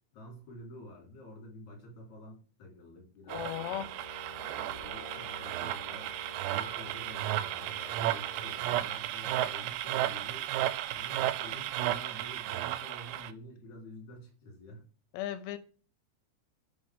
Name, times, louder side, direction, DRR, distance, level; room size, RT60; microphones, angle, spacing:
voice 1, 0.1-3.9 4.5-6.1 6.5-10.5 10.9-14.8, left 1 dB, 45° left, 5.1 m, -49 dB
voice 2, 3.3-3.9 15.1-15.6, left 12 dB, 80° left, 2.7 m, -36 dB
sound 1, 3.3-13.3, right 13 dB, 90° right, 2.8 m, -34 dB
Brass instrument, 3.4-8.9, left 1 dB, 15° right, 1.5 m, -50 dB
9.6 x 5.5 x 3.6 m
omnidirectional pair, 4.9 m